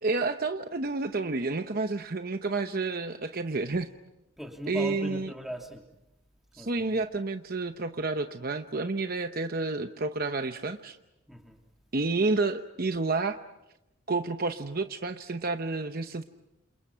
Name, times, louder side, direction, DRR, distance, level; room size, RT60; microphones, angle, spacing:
voice 1, 0.0-3.9 4.7-5.3 6.5-11.0 11.9-13.4 14.1-16.2, right 3 dB, 45° right, 8 dB, 0.9 m, -30 dB
voice 2, 4.4-5.8 6.5-7.0 11.3-11.6, equal, ahead, 2 dB, 3.2 m, -39 dB
29.5 x 28.0 x 5.8 m, 0.90 s
head